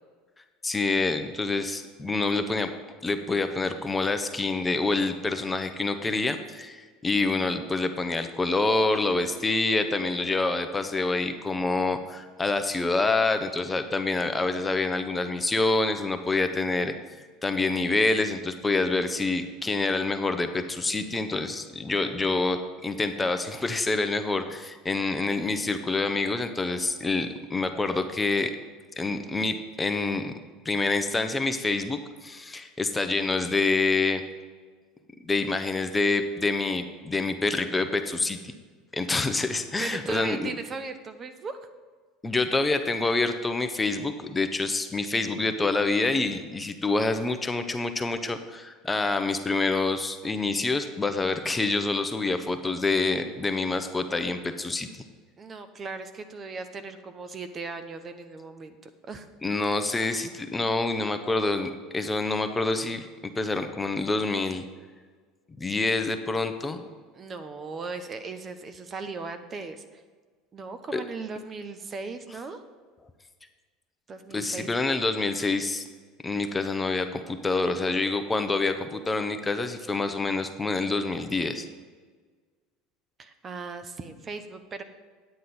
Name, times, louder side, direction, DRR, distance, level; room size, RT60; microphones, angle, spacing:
voice 1, 0.6-2.7 3.0-28.5 29.0-30.3 30.6-34.2 35.2-38.5 38.9-40.5 42.2-54.9 59.4-63.1 63.4-64.6 65.6-66.8 70.9-71.0 74.3-75.8 76.2-81.7, left 3 dB, 15° left, 8 dB, 0.9 m, -27 dB
voice 2, 39.8-41.6 55.4-59.3 67.1-70.0 70.5-72.6 74.1-74.7 83.2-84.8, right 4 dB, 35° right, 9 dB, 0.9 m, -38 dB
9.4 x 9.1 x 4.3 m, 1.5 s
hypercardioid pair, 85°, 0 cm